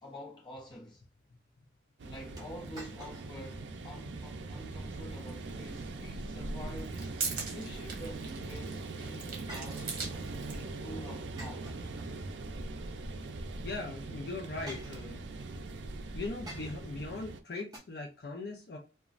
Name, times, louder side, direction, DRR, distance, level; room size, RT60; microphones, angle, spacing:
voice 1, 0.0-1.0 2.0-7.0 7.5-10.0 10.8-11.7, left 1 dB, 25° left, 0.9 m, -47 dB
sound 1, 2.0-17.4, right 2 dB, 80° right, 0.4 m, -41 dB
sound 2, 2.4-3.5 3.9-4.0 4.6-5.0 6.9-7.8 9.5-10.5 11.4-12.5 13.7-13.8 14.7-15.5 16.5-17.1 17.7-17.8, right 1 dB, 20° right, 0.7 m, -50 dB
sound 3, 5.3-5.4 6.7-10.7, right 5 dB, 50° right, 0.8 m, -40 dB
voice 2, 13.6-15.2 16.1-18.8, left 3 dB, 55° left, 0.5 m, -40 dB
3.0 x 2.2 x 2.4 m
head